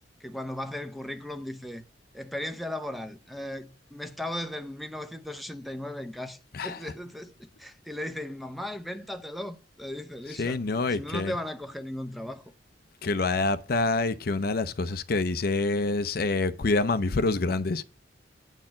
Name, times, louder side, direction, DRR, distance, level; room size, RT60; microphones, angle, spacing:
voice 1, 0.2-1.8 2.1-10.6 10.9-12.5, left 1 dB, ahead, 0.6 m, -37 dB
voice 2, 6.5-6.9 10.4-11.3 13.0-17.8, left 3 dB, 55° left, 0.5 m, -27 dB
8.9 x 4.3 x 7.1 m
head